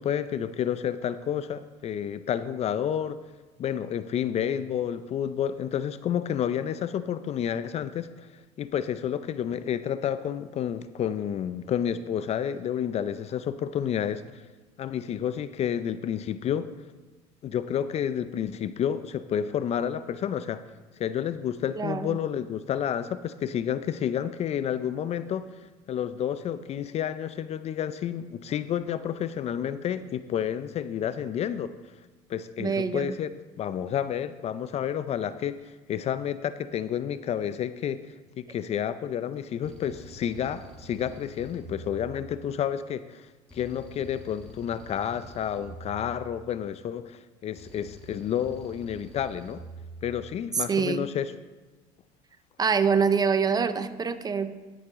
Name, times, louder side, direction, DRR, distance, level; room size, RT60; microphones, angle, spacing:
voice 1, 0.0-3.2 3.6-8.3 8.6-14.5 14.8-16.7 17.4-20.6 21.0-25.5 25.9-31.7 32.3-33.3 33.6-35.6 35.9-38.0 38.4-43.3 43.5-49.6 50.0-51.3, left 9 dB, 40° left, 14 dB, 0.5 m, -30 dB
voice 2, 21.8-22.2 32.6-33.2 50.6-51.1 52.6-54.6, right 5 dB, 25° right, 12 dB, 0.7 m, -25 dB
sound 1, 39.6-42.7 43.5-46.8 47.6-50.4, right 2 dB, 5° left, 1.7 m, -46 dB
12.5 x 7.9 x 3.7 m, 1.3 s
supercardioid pair, 100°, 16 cm